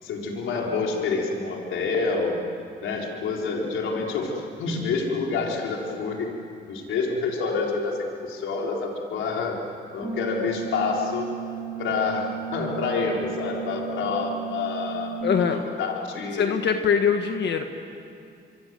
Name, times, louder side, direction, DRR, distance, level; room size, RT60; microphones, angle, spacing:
voice 1, 0.0-2.4 2.8-6.3 6.7-9.6 9.9-11.3 11.8-15.1 15.5-16.5, left 4 dB, 80° left, -1 dB, 4.4 m, -27 dB
sound 1, 10.0-15.2, right 9 dB, 20° right, 4.3 m, -35 dB
voice 2, 15.2-15.6 16.3-17.6, left 7 dB, 60° left, 5 dB, 1.5 m, -22 dB
26.5 x 24.0 x 7.8 m, 2.4 s
cardioid pair, 90°, 20 cm